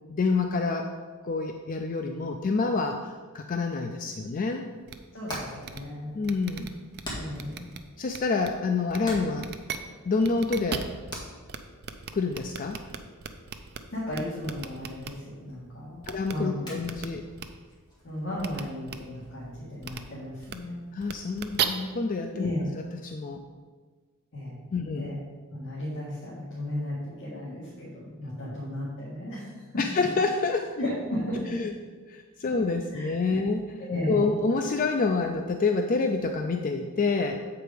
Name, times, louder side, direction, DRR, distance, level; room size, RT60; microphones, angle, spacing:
voice 1, 0.1-0.9 1.2-4.7 6.1-6.8 8.0-9.5 10.1-10.9 12.1-12.8 16.1-17.3 20.9-22.5 23.0-23.4 24.7-25.2 29.8-30.7 31.5-31.7 32.1-33.8 34.1-37.4, left 4 dB, 35° left, 4 dB, 0.4 m, -27 dB
Hammer, 4.8-20.0, equal, 20° left, 1.9 m, -46 dB
sound 1, 4.9-5.0 5.3-5.4 5.6-5.8 6.2-7.0 7.3-7.8 8.1-8.5 8.9-9.0 9.4-9.8 10.2-11.2 11.5-11.6 11.8-13.8 14.1-15.1 16.0-16.3 16.8-17.1 17.4-17.5 18.4-18.6 18.9-19.0 19.8-20.0 20.4-20.5 21.0-21.6, right 8 dB, 45° right, 0.5 m, -34 dB
voice 2, 5.1-6.1 7.1-7.7 13.9-16.0 16.3-16.7 17.1-17.2 18.0-20.8 22.3-22.7 24.3-25.2 25.5-29.5 29.7-29.8 30.8-31.5 32.9-33.4 33.8-34.4, left 1 dB, 60° left, -8 dB, 1.8 m, -34 dB
7.6 x 4.8 x 5.0 m, 1.5 s
head